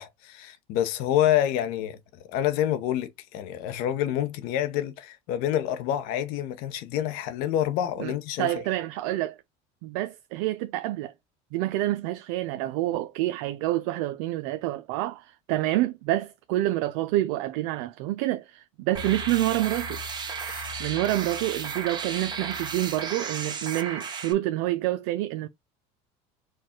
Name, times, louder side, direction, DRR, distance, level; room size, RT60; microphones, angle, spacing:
voice 1, 0.0-8.5 20.5-20.7, left 11 dB, 65° left, 0.9 m, -27 dB
voice 2, 8.4-9.4 9.8-11.1 11.5-20.0 20.8-25.5, right 15 dB, 75° right, 0.5 m, -28 dB
sound 1, 18.9-24.3, right 5 dB, 25° right, 1.1 m, -34 dB
4.7 x 2.4 x 4.3 m
supercardioid pair, 120°, 16 cm